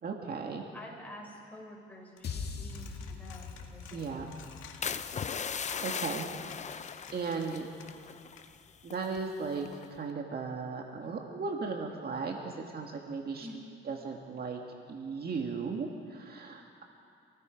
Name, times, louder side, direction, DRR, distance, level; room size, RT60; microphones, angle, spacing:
voice 1, 0.0-0.6 3.9-4.3 5.4-6.3 6.6-6.8 7.1-7.7 8.8-13.5 13.9-14.6 14.9-16.8, right 4 dB, 50° right, 1 dB, 2.1 m, -36 dB
voice 2, 0.7-4.4 11.0-11.2 13.4-13.6, left 1 dB, 10° left, -3 dB, 6.9 m, -49 dB
Coin (dropping), 2.2-8.4, left 6 dB, 85° left, 2.0 m, -54 dB
sound 1, 2.2-6.6, left 5 dB, 55° left, 2.2 m, -43 dB
sound 2, 4.8-8.6 8.8-9.2 9.7-10.0, left 7 dB, 35° left, 0.6 m, -38 dB
27.5 x 18.5 x 5.3 m, 2.4 s
cardioid pair, 90°, 20 cm